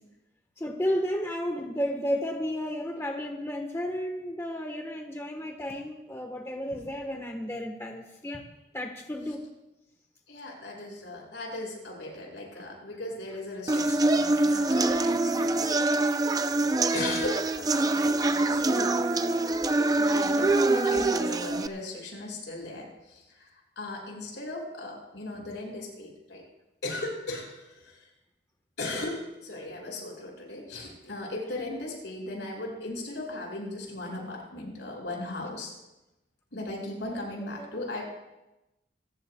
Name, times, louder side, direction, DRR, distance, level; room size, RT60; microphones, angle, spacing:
voice 1, 0.6-8.4 8.7-9.4 14.7-16.1 19.7-19.8 37.3-37.8, equal, 15° left, 3 dB, 1.1 m, -33 dB
voice 2, 10.3-15.9 16.9-19.0 19.9-26.4 26.8-28.1 28.8-35.7 36.5-38.0, left 2 dB, 85° left, -1 dB, 5.8 m, -37 dB
sound 1, 13.7-21.7, right 2 dB, 20° right, 0.4 m, -25 dB
26.0 x 14.5 x 2.2 m, 0.97 s
head